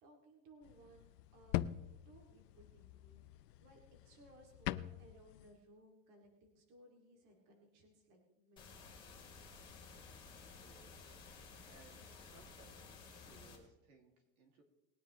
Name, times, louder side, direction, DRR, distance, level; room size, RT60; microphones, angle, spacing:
voice 1, 0.0-1.7 2.1-3.2 3.6-9.1, right 1 dB, 40° right, 2 dB, 2.5 m, -63 dB
sound 1, 0.6-5.5, left 14 dB, 75° left, 0.7 m, -44 dB
sound 2, 8.6-13.6, left 4 dB, 10° left, 2.7 m, -55 dB
voice 2, 10.6-11.2 11.6-14.6, right 3 dB, 60° right, 2 dB, 2.6 m, -65 dB
20.5 x 9.7 x 3.1 m, 0.95 s
supercardioid pair, 170°, 50 cm